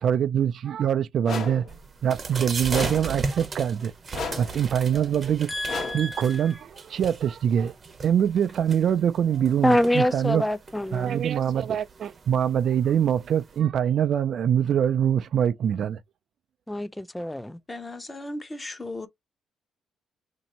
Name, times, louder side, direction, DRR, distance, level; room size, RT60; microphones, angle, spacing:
voice 1, 0.0-1.7 2.0-3.9 4.4-5.6 5.9-7.7 8.0-10.4 10.9-16.0, right 9 dB, 60° right, 0.4 m, -24 dB
sound 1, 1.2-1.7 2.7-3.2 4.1-4.6 5.7-6.1, left 4 dB, 65° left, 1.1 m, -33 dB
sound 2, 1.7-13.6, right 4 dB, 40° right, 0.8 m, -37 dB
voice 2, 5.5-6.5 9.6-11.2 16.7-17.6, left 1 dB, 5° left, 0.4 m, -26 dB
voice 3, 17.7-19.1, left 2 dB, 25° left, 0.9 m, -36 dB
2.9 x 2.6 x 4.2 m
cardioid pair, 90°, 0 cm